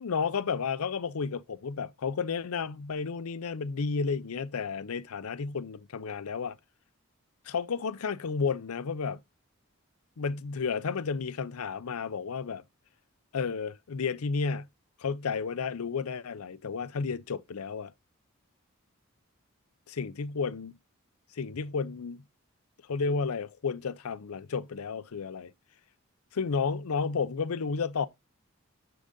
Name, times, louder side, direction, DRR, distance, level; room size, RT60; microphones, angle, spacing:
voice 1, 0.0-6.6 7.5-9.2 10.2-12.6 13.3-14.7 15.0-17.9 19.9-20.7 21.3-22.2 22.9-25.5 26.3-28.1, left 5 dB, 85° left, 0.6 m, -32 dB
9.9 x 3.9 x 3.8 m
head